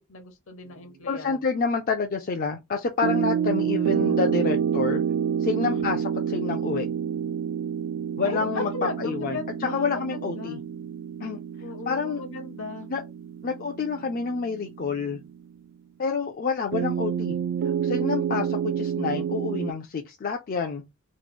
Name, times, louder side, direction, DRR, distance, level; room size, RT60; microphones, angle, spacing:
voice 1, 0.1-1.4 5.6-5.9 8.2-10.6 11.6-12.9, left 3 dB, 65° left, 0.8 m, -36 dB
voice 2, 1.1-5.0 5.4-6.9 8.1-8.7 9.0-10.6 11.2-11.4 11.9-12.2 12.9-13.0 13.4-15.2 16.0-17.4 17.8-20.8, left 5 dB, 45° left, 0.4 m, -28 dB
sound 1, 3.0-15.4 16.7-19.7, right 8 dB, 65° right, 0.3 m, -28 dB
3.0 x 2.0 x 4.1 m
head